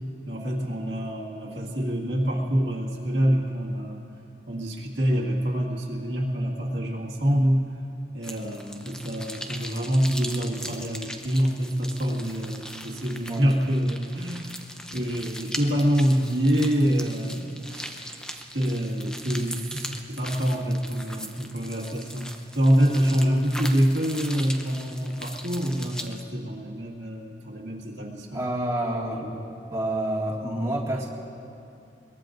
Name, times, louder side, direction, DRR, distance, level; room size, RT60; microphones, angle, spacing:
voice 1, 0.3-4.0 4.5-7.6 8.1-14.5 14.9-18.0 18.5-28.5, equal, 70° right, -3 dB, 1.9 m, -26 dB
sound 1, 8.2-26.2, equal, 5° left, 0.7 m, -40 dB
voice 2, 28.3-29.4 29.7-31.1, right 1 dB, 15° right, -5 dB, 2.0 m, -28 dB
23.0 x 21.5 x 2.6 m, 2.6 s
head